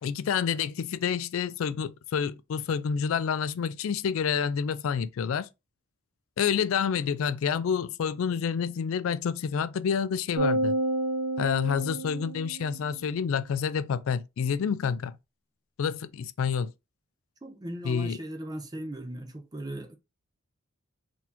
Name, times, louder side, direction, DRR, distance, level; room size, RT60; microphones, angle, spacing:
voice 1, 0.0-5.5 6.4-10.7 11.4-15.2 15.8-16.7 17.8-18.2, left 7 dB, 65° left, 0.3 m, -28 dB
sound 1, 10.3-12.9, right 1 dB, 40° right, 1.0 m, -29 dB
voice 2, 17.4-20.0, right 1 dB, 20° right, 0.5 m, -38 dB
4.0 x 2.8 x 2.8 m
head